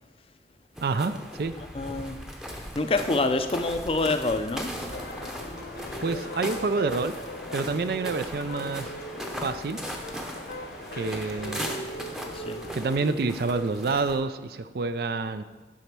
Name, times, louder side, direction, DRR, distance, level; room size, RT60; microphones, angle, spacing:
sound 1, 0.8-14.2, equal, 5° right, 0.7 m, -38 dB
voice 1, 0.8-1.5 6.0-7.1 7.5-8.9 9.4-9.8 10.9-11.6 12.7-15.4, right 3 dB, 60° right, 11 dB, 0.4 m, -28 dB
voice 2, 1.7-2.2 2.7-4.7 12.3-12.6, left 2 dB, 30° left, 8 dB, 0.5 m, -26 dB
sound 2, 4.9-13.1, left 1 dB, 65° left, 1.0 m, -39 dB
9.9 x 4.2 x 6.0 m, 1.2 s
head